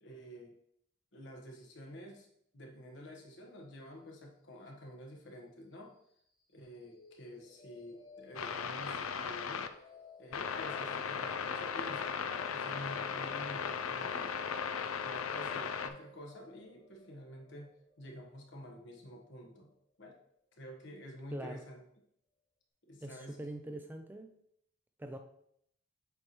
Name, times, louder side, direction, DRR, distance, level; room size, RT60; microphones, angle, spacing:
voice 1, 0.0-0.5 1.1-2.3 2.5-6.0 6.5-9.7 10.2-12.2 12.5-14.4 15.0-17.7 18.0-19.7 20.0-20.2 20.6-21.8 22.9-23.4, equal, 60° left, 1 dB, 1.2 m, -49 dB
sound 1, 6.8-20.8, left 4 dB, 20° left, 1.0 m, -59 dB
sound 2, 8.3-9.7 10.3-15.9, left 6 dB, 85° left, 0.5 m, -37 dB
voice 2, 21.3-21.6 23.0-24.3 25.0-25.2, right 1 dB, 10° right, 5 dB, 0.3 m, -43 dB
7.7 x 4.2 x 3.1 m, 0.71 s
head